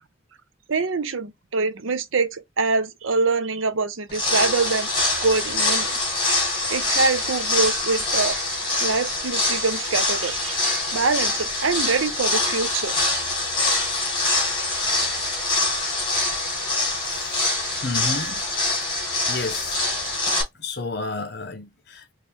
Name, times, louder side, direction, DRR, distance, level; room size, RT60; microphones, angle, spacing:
voice 1, 0.7-6.1 6.7-12.9, right 4 dB, 80° right, 0.7 m, -25 dB
sound 1, 4.1-20.4, left 2 dB, 25° left, 2.4 m, -24 dB
voice 2, 16.9-17.5 17.8-18.5 19.3-19.8 20.2-22.1, left 3 dB, 55° left, 1.0 m, -32 dB
4.2 x 3.2 x 3.6 m
head